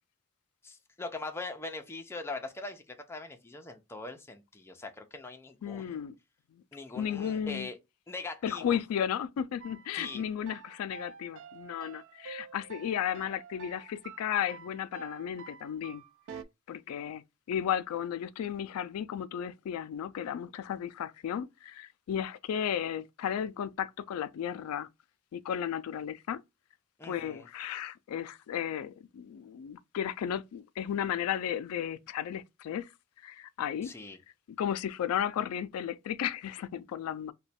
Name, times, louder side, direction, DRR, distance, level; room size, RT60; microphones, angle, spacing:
voice 1, 0.6-5.9 6.7-7.8 8.1-8.8 9.9-10.2 27.0-27.5 33.8-34.2, left 3 dB, 10° left, 0.5 m, -41 dB
voice 2, 5.6-6.2 6.5-6.6 6.9-7.7 8.4-16.0 16.3-16.4 16.7-17.2 17.5-24.9 25.3-26.4 27.0-32.9 33.2-33.9 34.6-37.3, left 9 dB, 80° left, 0.3 m, -34 dB
sound 1, 9.6-16.4, right 6 dB, 60° right, 0.3 m, -49 dB
3.0 x 2.2 x 4.1 m
head